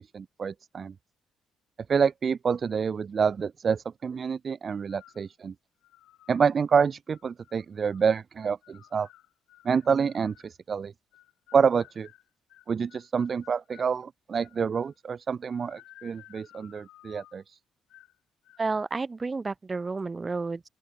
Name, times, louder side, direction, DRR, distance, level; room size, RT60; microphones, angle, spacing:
voice 1, 0.1-0.9 1.9-5.5 6.3-9.1 9.6-10.9 11.5-12.1 12.7-17.6, right 6 dB, 45° right, 0.5 m, -27 dB
sound 1, 4.9-5.3 5.8-6.5 7.1-8.1 8.6-10.5 11.1-13.9 14.4-15.0 15.5-17.4 17.9-18.2 18.4-18.9, left 15 dB, 90° left, 8.0 m, -56 dB
voice 2, 18.6-20.7, right 3 dB, 25° right, 2.2 m, -31 dB
open air
cardioid pair, 90°, 0 cm